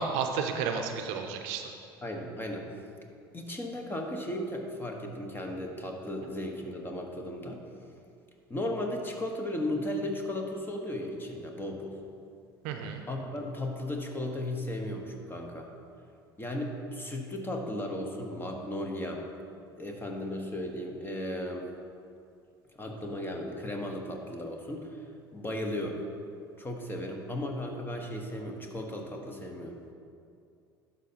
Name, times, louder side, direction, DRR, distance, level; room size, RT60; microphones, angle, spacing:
voice 1, 0.0-1.7 12.6-13.0, right 5 dB, 65° right, 5 dB, 0.6 m, -32 dB
voice 2, 2.0-2.7 3.3-7.6 8.5-12.0 13.1-15.7 16.4-19.2 19.8-21.7 22.8-25.0 25.3-26.0 26.6-29.8, left 1 dB, 15° left, 2 dB, 1.1 m, -35 dB
11.5 x 5.4 x 2.8 m, 2.4 s
hypercardioid pair, 70°, 13 cm